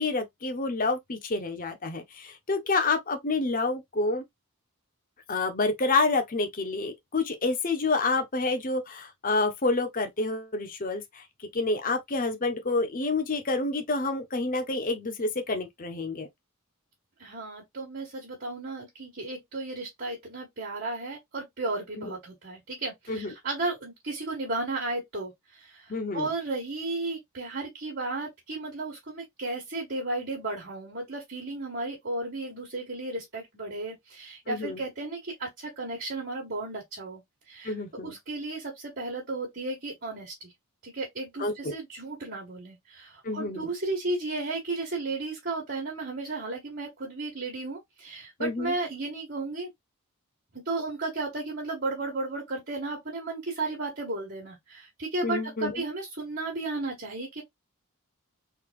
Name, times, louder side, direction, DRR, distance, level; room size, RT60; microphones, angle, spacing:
voice 1, 0.0-4.2 5.3-11.2 11.5-16.3 22.0-22.1 23.1-23.3 25.9-26.3 34.5-34.8 37.6-38.1 41.4-41.8 43.2-43.7 48.4-48.7 55.2-55.8, left 3 dB, 40° left, 0.8 m, -28 dB
voice 2, 17.2-37.2 37.5-37.7 38.0-40.5 40.8-49.7 50.5-57.4, right 2 dB, 50° right, 1.7 m, -34 dB
3.9 x 3.2 x 2.5 m
head